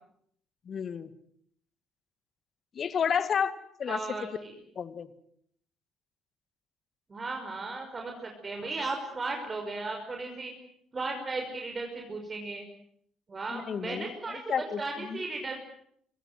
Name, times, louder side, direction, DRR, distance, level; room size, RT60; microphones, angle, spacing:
voice 1, 0.7-1.1 2.8-3.5 3.8-4.3 4.8-5.1 13.5-15.2, left 7 dB, 45° left, 14 dB, 1.9 m, -31 dB
voice 2, 3.9-4.5 7.1-10.5 10.9-12.7 13.3-14.4 14.8-15.6, right 3 dB, 30° right, 3 dB, 5.6 m, -36 dB
27.0 x 23.5 x 7.8 m, 0.69 s
figure-of-eight pair, 50°, 0 cm